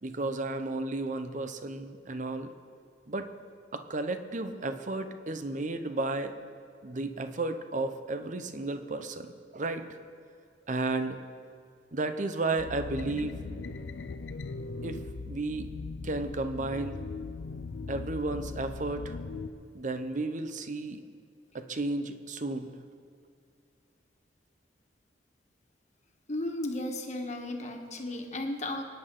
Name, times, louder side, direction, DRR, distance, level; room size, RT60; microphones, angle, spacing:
voice 1, 0.0-2.5 3.1-3.3 3.7-6.3 6.8-9.3 9.5-10.0 10.7-11.2 11.9-13.4 14.8-15.7 16.0-17.0 17.9-19.2 19.7-21.0 21.5-22.7, right 2 dB, 45° right, 8 dB, 0.8 m, -33 dB
sound 1, 12.6-19.5, left 3 dB, 85° left, 0.5 m, -39 dB
voice 2, 26.3-28.8, left 1 dB, 40° left, 3 dB, 1.5 m, -34 dB
24.0 x 10.0 x 3.9 m, 2.3 s
head